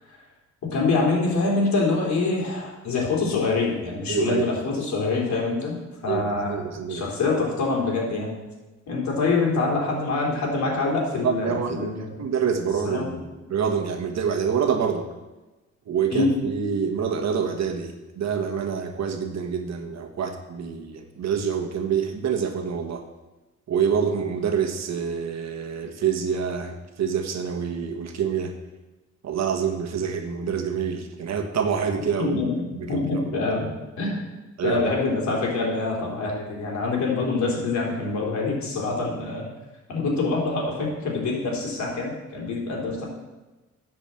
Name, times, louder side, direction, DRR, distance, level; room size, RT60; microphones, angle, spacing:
voice 1, 0.6-5.8 6.0-8.3 8.9-12.2 12.8-13.1 16.1-16.3 32.2-34.2 34.6-39.5 39.9-43.1, left 3 dB, 65° left, -2 dB, 3.7 m, -25 dB
voice 2, 4.1-4.5 6.1-7.0 11.2-15.1 15.9-23.0 23.7-28.5 29.2-32.3 32.7-33.6 34.6-34.8, right 7 dB, 60° right, 5 dB, 1.4 m, -27 dB
10.5 x 5.3 x 7.6 m, 1.1 s
cardioid pair, 90°, 30 cm